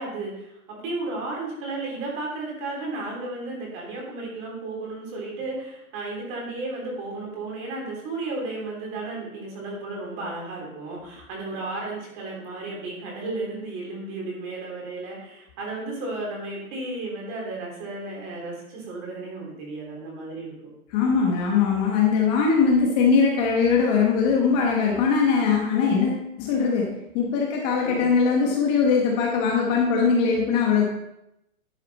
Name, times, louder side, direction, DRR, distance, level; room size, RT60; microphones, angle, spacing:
voice 1, 0.0-20.5 27.8-28.0, right 2 dB, 30° right, -2 dB, 3.3 m, -33 dB
voice 2, 20.9-30.9, left 5 dB, 30° left, 0 dB, 1.2 m, -21 dB
11.0 x 6.3 x 4.1 m, 0.85 s
hypercardioid pair, 160°, 42 cm